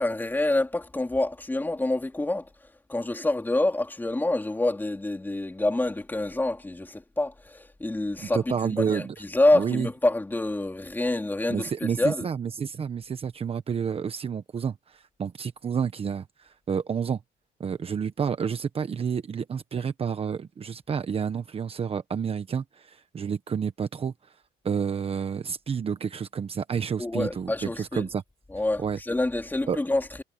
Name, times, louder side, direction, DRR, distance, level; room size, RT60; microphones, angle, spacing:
voice 1, 0.0-2.5 2.9-12.2 27.0-28.1 28.5-30.2, left 2 dB, 10° left, 3.4 m, -27 dB
voice 2, 8.3-9.1 9.5-9.9 11.5-17.2 17.6-24.1 24.6-28.2 28.8-29.0 29.7-29.8, right 7 dB, 35° right, 1.2 m, -30 dB
cardioid pair, 110°, 17 cm